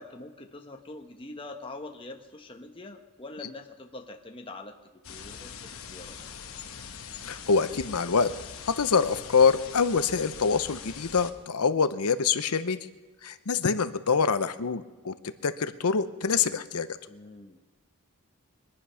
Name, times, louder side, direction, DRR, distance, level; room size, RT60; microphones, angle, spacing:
voice 1, 0.0-4.8 5.1-6.2 14.1-14.3 17.1-17.6, left 2 dB, 25° left, 3 dB, 1.0 m, -44 dB
sound 1, 5.0-11.3, left 6 dB, 65° left, 1.1 m, -42 dB
voice 2, 7.2-8.3 8.6-12.8 13.2-15.1 15.4-17.0, left 5 dB, 80° left, 12 dB, 0.8 m, -25 dB
22.5 x 10.5 x 5.7 m, 1.2 s
head